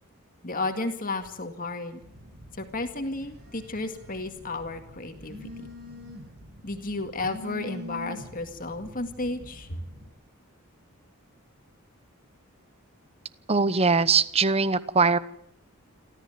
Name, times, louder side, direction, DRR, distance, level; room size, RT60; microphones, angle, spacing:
voice 1, 0.4-2.0 2.6-5.5 6.6-9.8, left 2 dB, 40° left, 7 dB, 2.2 m, -33 dB
Telephone, 2.0-10.1, equal, 50° right, 6.2 m, -45 dB
voice 2, 13.5-15.2, right 4 dB, 25° right, 16 dB, 0.9 m, -21 dB
28.0 x 14.0 x 9.4 m, 0.72 s
head